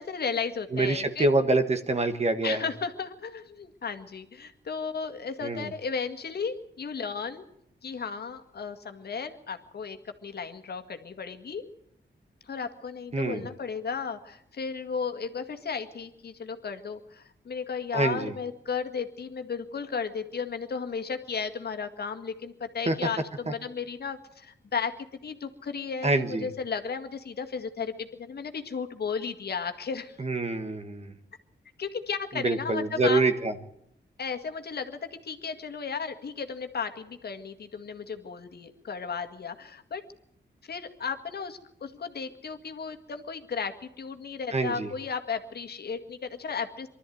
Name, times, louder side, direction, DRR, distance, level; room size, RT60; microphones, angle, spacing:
voice 1, 0.0-1.3 2.4-7.4 7.8-11.6 12.4-24.9 25.2-30.2 31.8-33.2 34.2-40.0 40.6-46.9, left 5 dB, 60° left, 6 dB, 1.9 m, -34 dB
voice 2, 0.7-2.7 5.4-5.7 13.1-13.5 17.9-18.3 22.8-23.0 26.0-26.5 30.2-31.1 32.3-33.5 44.5-44.9, right 2 dB, 35° right, 9 dB, 1.4 m, -26 dB
23.5 x 13.0 x 9.3 m, 0.75 s
wide cardioid pair, 150°, 19 cm